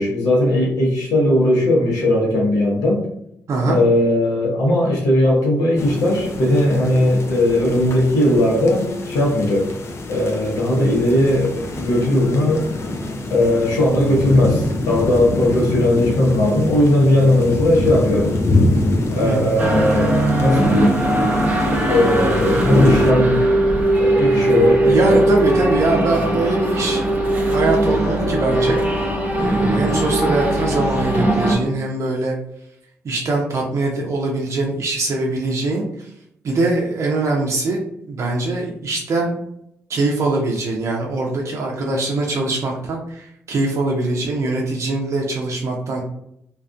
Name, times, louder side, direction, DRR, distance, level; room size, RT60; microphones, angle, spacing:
voice 1, 0.0-3.0 3.6-9.7 10.1-12.7 13.3-18.3 19.1-21.0 21.9-23.5 24.0-25.2, left 1 dB, 75° left, -3 dB, 0.9 m, -18 dB
voice 2, 3.5-3.8 19.2-19.4 24.8-29.1 29.4-32.3 33.0-36.1 36.4-37.8 38.1-39.4 39.9-46.0, right 2 dB, 50° right, -1 dB, 0.6 m, -22 dB
sound 1, 5.8-23.1, left 2 dB, 45° left, 0.5 m, -25 dB
sound 2, 19.6-31.6, right 1 dB, 30° right, 0.8 m, -19 dB
2.5 x 2.4 x 2.3 m, 0.74 s
hypercardioid pair, 45°, 6 cm